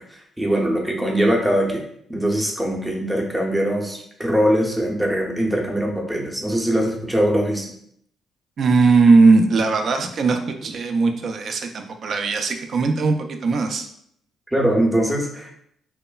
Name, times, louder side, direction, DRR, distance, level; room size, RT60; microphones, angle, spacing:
voice 1, 0.0-1.8 2.1-7.7 14.5-15.5, equal, 10° right, 0 dB, 0.6 m, -22 dB
voice 2, 8.6-13.9, right 3 dB, 55° right, 5 dB, 0.3 m, -18 dB
3.0 x 2.0 x 2.3 m, 0.69 s
cardioid pair, 90°, 0 cm